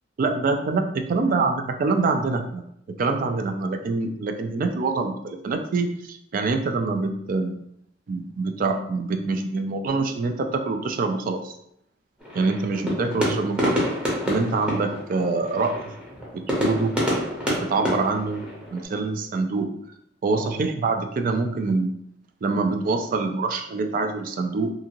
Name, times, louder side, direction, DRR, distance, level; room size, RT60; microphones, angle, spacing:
voice 1, 0.2-2.6 3.0-7.5 8.1-11.5 12.3-13.9 14.3-15.8 16.6-17.0 17.5-18.4 18.7-19.7 20.2-21.9 22.4-24.7, right 3 dB, 45° right, 6 dB, 0.3 m, -25 dB
sound 1, 12.2-18.8, equal, 5° right, 0.8 m, -28 dB
2.7 x 2.4 x 2.8 m, 0.75 s
head